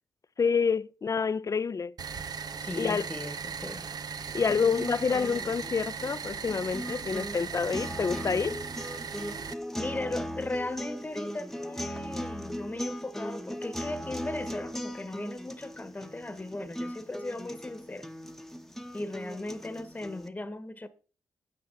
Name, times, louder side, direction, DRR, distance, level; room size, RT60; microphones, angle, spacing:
voice 1, 0.4-1.9 2.8-3.0 4.3-8.6, left 5 dB, 45° left, 0.6 m, -28 dB
sound 1, 2.0-9.5, right 6 dB, 55° right, 0.9 m, -38 dB
voice 2, 2.6-3.9 9.8-18.1 18.9-20.9, left 2 dB, 20° left, 1.3 m, -37 dB
sound 2, 4.3-20.3, equal, 5° left, 1.2 m, -39 dB
9.5 x 8.5 x 4.0 m
cardioid pair, 55°, 8 cm